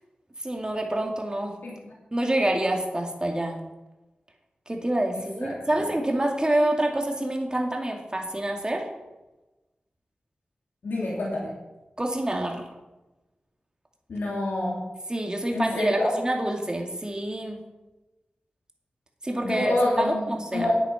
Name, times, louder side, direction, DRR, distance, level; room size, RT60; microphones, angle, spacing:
voice 1, 0.4-1.6 2.1-3.6 4.7-8.9 12.0-12.7 15.1-17.6 19.2-20.7, right 1 dB, 25° right, 1 dB, 2.4 m, -27 dB
voice 2, 10.8-11.5 14.1-14.8 15.5-16.1 19.4-20.7, left 1 dB, 85° left, -5 dB, 2.9 m, -27 dB
9.1 x 8.9 x 5.9 m, 1.1 s
cardioid pair, 50°, 3 cm